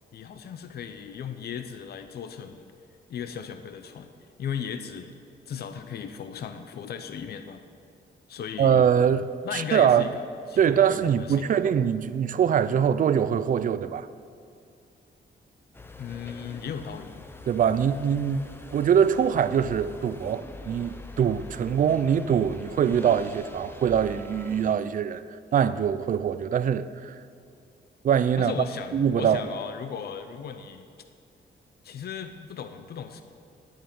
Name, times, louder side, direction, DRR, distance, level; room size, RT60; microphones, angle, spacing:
voice 1, 0.1-2.7 3.1-4.1 4.4-5.1 5.5-7.6 8.3-8.9 9.4-10.2 10.5-11.6 16.0-17.2 28.4-30.9 31.8-33.2, left 7 dB, 55° left, 0.6 m, -36 dB
voice 2, 8.6-9.3 9.5-10.1 10.6-14.1 17.5-18.4 18.7-25.2 25.5-27.1 28.0-28.5 28.9-29.4, right 8 dB, 45° right, 0.4 m, -23 dB
sound 1, 15.7-24.8, left 2 dB, 10° left, 0.5 m, -44 dB
10.5 x 7.6 x 8.7 m
wide cardioid pair, 170°, 19 cm